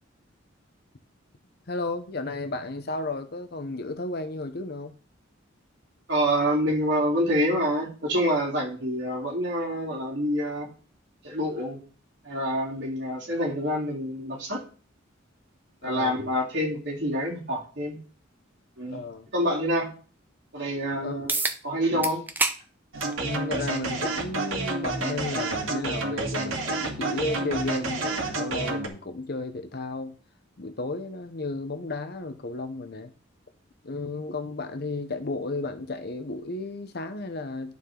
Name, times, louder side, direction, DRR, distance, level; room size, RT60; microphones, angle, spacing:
voice 1, 1.7-5.0 15.8-16.3 18.9-19.3 21.0-21.2 21.9-22.1 23.2-30.2 30.6-33.1 33.8-37.8, left 2 dB, 50° left, 7 dB, 0.8 m, -33 dB
voice 2, 6.1-10.7 11.2-11.8 12.2-14.6 15.8-18.0 18.8-19.0 19.3-19.9 20.5-21.3 21.6-22.2, equal, 60° right, -2 dB, 3.6 m, -27 dB
sound 1, 21.3-21.6 22.0-22.6 23.0-23.1 24.2-24.3 29.2-29.3, right 3 dB, 10° right, 0.7 m, -26 dB
sound 2, 22.9-28.9, right 2 dB, 85° right, 2.1 m, -29 dB
11.0 x 7.2 x 3.9 m, 0.38 s
head